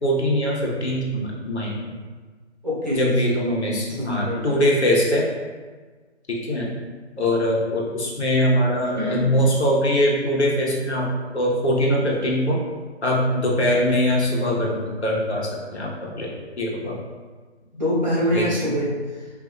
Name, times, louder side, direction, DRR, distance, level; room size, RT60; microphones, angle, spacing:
voice 1, 0.0-1.9 2.9-5.2 6.3-6.7 7.2-12.6 13.0-17.0 18.3-18.7, equal, 70° left, -3 dB, 1.1 m, -22 dB
voice 2, 2.6-3.1 3.5-3.7 4.0-4.5 8.8-9.4 17.8-19.3, equal, 40° right, -7 dB, 1.0 m, -25 dB
5.1 x 2.7 x 2.5 m, 1.4 s
hypercardioid pair, 180°, 34 cm